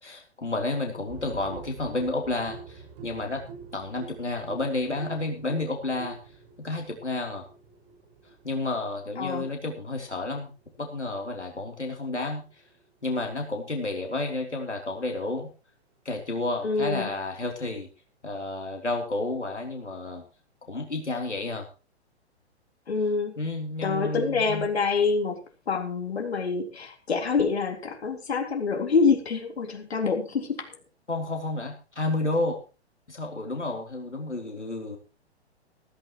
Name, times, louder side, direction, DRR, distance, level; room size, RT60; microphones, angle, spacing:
voice 1, 0.0-3.4 3.7-6.2 6.6-7.4 8.4-10.5 10.8-12.4 13.0-15.5 16.1-17.9 18.2-20.2 20.6-21.7 23.4-24.7 31.1-32.6 33.1-35.0, left 2 dB, 85° left, 2 dB, 3.6 m, -31 dB
sound 1, 1.1-12.9 14.3-14.4, right 6 dB, 40° right, 5.6 m, -47 dB
voice 2, 16.6-17.1 22.9-23.3 23.8-25.4 25.7-30.7, left 5 dB, 65° left, 3 dB, 3.8 m, -26 dB
16.5 x 16.0 x 3.1 m, 0.34 s
figure-of-eight pair, 115°, 34 cm